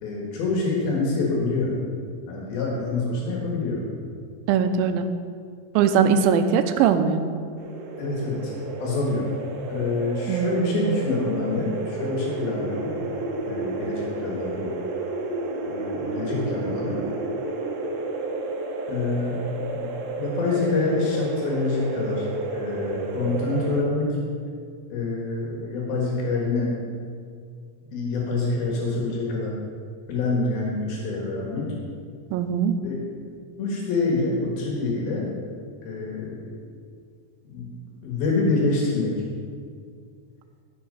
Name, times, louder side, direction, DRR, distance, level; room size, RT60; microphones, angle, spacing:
voice 1, 0.0-1.7 2.3-3.8 8.0-8.5 8.8-9.3 9.7-12.9 13.4-14.7 15.7-17.0 18.9-19.4 19.7-19.9 20.2-22.3 22.5-24.1 24.9-26.7 27.9-29.5 30.1-31.7 32.8-33.0 33.6-35.3 35.8-36.6 37.5-37.7 38.0-39.1, left 3 dB, 80° left, -3 dB, 3.5 m, -26 dB
voice 2, 4.5-5.1 5.8-7.2 10.3-11.0 32.3-32.8, right 7 dB, 80° right, 8 dB, 2.3 m, -21 dB
sound 1, 7.6-23.8, right 3 dB, 65° right, 1.8 m, -31 dB
13.5 x 5.8 x 5.5 m, 2.1 s
omnidirectional pair, 4.3 m